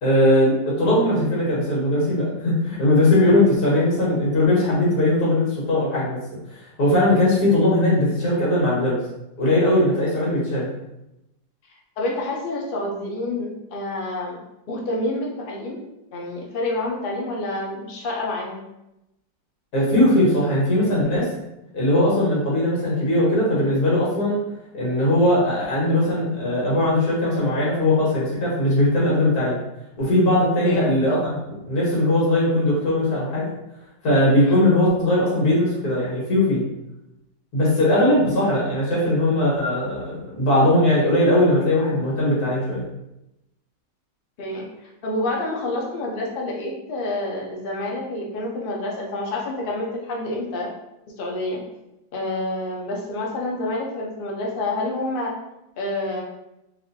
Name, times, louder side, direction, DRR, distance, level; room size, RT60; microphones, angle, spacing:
voice 1, 0.0-6.2 6.5-9.0 9.4-10.7 19.7-21.3 21.7-24.4 24.7-29.6 30.0-33.5 34.0-36.6 37.5-42.8, left 1 dB, 60° left, -6 dB, 1.8 m, -19 dB
voice 2, 12.0-14.4 14.7-15.8 16.1-18.6 30.6-30.9 34.5-34.6 44.4-50.7 51.2-51.6 52.1-55.3 55.8-56.2, left 2 dB, 80° left, -2 dB, 0.4 m, -28 dB
4.1 x 2.6 x 2.6 m, 0.90 s
omnidirectional pair, 1.9 m